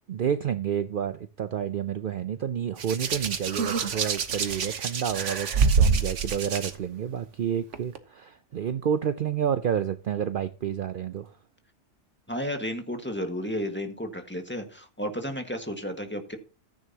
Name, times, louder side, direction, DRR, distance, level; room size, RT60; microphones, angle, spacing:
voice 1, 0.1-11.3, right 8 dB, 55° right, 0.7 m, -29 dB
Hands, 2.8-6.7 7.7-8.0, right 5 dB, 85° right, 1.4 m, -26 dB
voice 2, 12.3-16.4, equal, 10° left, 1.6 m, -32 dB
14.5 x 9.3 x 2.8 m
omnidirectional pair, 1.2 m